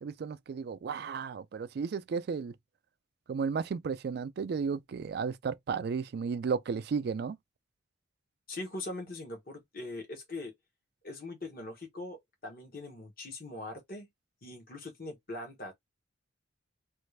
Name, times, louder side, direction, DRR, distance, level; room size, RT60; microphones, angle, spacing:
voice 1, 0.0-2.5 3.3-7.4, right 5 dB, 55° right, 0.3 m, -33 dB
voice 2, 8.5-10.5 11.0-14.1 14.4-15.7, left 2 dB, 50° left, 1.3 m, -41 dB
3.1 x 2.5 x 3.2 m
head